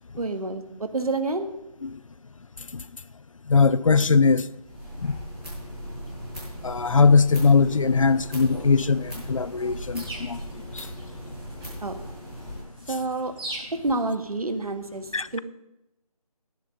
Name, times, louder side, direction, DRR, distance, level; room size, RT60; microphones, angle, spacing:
voice 1, 0.2-1.5 11.8-12.0 12.9-13.3 13.7-15.4, right 2 dB, 70° right, 1.5 m, -28 dB
voice 2, 3.5-4.5 5.0-5.2 6.6-10.4 10.7-10.9 15.1-15.4, left 4 dB, 60° left, 0.5 m, -20 dB
sound 1, 4.6-12.6, equal, 5° right, 5.7 m, -38 dB
sound 2, 8.9-14.1, right 1 dB, 40° right, 4.3 m, -43 dB
11.5 x 10.5 x 5.2 m
figure-of-eight pair, 170°, 19 cm